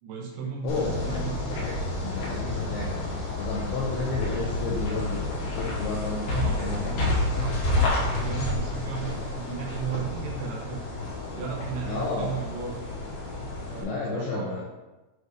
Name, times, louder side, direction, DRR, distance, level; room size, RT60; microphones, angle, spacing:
voice 1, 0.0-1.8 6.3-10.9 11.3-12.8 13.7-14.6, right 7 dB, 75° right, -1 dB, 3.2 m, -35 dB
voice 2, 0.6-1.2 1.6-1.8 2.0-7.1 11.8-12.3 13.8-14.6, left 3 dB, 85° left, -3 dB, 2.3 m, -32 dB
sound 1, 0.7-13.8, left 2 dB, 60° left, 2.2 m, -30 dB
8.1 x 2.8 x 4.8 m, 1.1 s
omnidirectional pair, 5.5 m